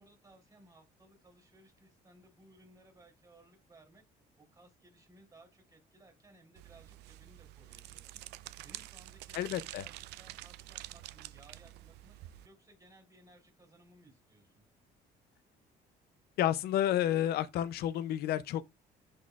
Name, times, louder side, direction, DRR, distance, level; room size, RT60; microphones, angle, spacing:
voice 1, 0.0-4.0 4.4-8.2 8.6-12.2 12.4-14.6, right 2 dB, 20° right, 3.7 m, -61 dB
sound 1, 6.6-12.5, right 16 dB, 85° right, 0.5 m, -48 dB
voice 2, 9.3-9.8 16.4-18.7, left 12 dB, 70° left, 0.5 m, -30 dB
11.0 x 4.1 x 2.3 m
cardioid pair, 110°, 17 cm